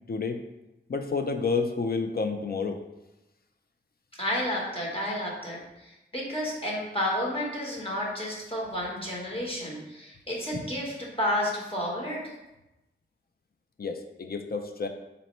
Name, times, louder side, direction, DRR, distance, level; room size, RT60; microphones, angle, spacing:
voice 1, 0.1-0.4 0.9-2.8 13.8-14.9, left 4 dB, 50° left, 6 dB, 0.4 m, -29 dB
voice 2, 4.2-12.3, left 1 dB, 25° left, -4 dB, 1.1 m, -31 dB
4.1 x 2.1 x 4.2 m, 0.97 s
wide cardioid pair, 60°, 20 cm